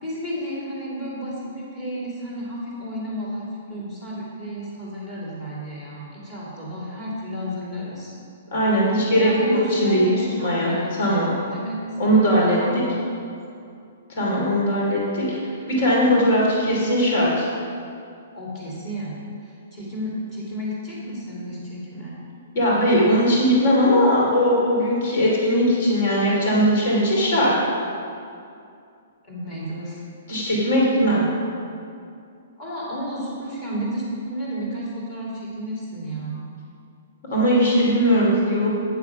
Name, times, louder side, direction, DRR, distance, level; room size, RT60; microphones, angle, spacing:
voice 1, 0.0-8.1 9.1-11.8 12.5-12.8 13.6-13.7 18.3-19.1 19.4-22.2 29.2-30.0 32.6-36.5, equal, 20° left, -7 dB, 2.5 m, -32 dB
voice 2, 8.5-10.1 10.4-11.3 12.0-12.6 14.1-17.5 22.5-27.5 30.3-31.2 37.3-38.7, equal, 40° left, -4 dB, 2.7 m, -19 dB
9.6 x 6.9 x 5.8 m, 2.5 s
hypercardioid pair, 175°, 0 cm